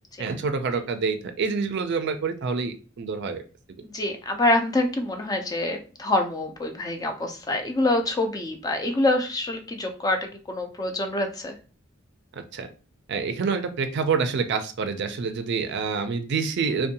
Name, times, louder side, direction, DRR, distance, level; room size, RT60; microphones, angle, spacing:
voice 1, 0.2-3.4 12.5-12.7 13.1-16.9, right 5 dB, 60° right, 8 dB, 0.4 m, -27 dB
voice 2, 3.8-11.6, left 1 dB, 20° left, 5 dB, 0.4 m, -26 dB
2.6 x 2.2 x 2.7 m, 0.36 s
head